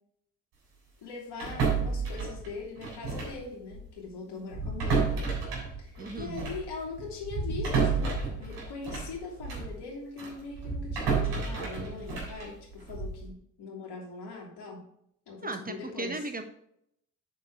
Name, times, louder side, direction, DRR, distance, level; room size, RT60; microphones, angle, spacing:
voice 1, 1.0-5.1 5.8-14.9 15.3-16.3, left 4 dB, 55° left, -3 dB, 3.1 m, -41 dB
sound 1, 1.4-3.4 3.7-3.9 4.5-9.7 10.2-13.2, right 4 dB, 55° right, 3.6 m, -31 dB
voice 2, 6.0-6.5 15.4-16.4, right 3 dB, 20° right, 7 dB, 1.3 m, -36 dB
9.5 x 4.6 x 4.8 m, 0.74 s
figure-of-eight pair, 40°, 49 cm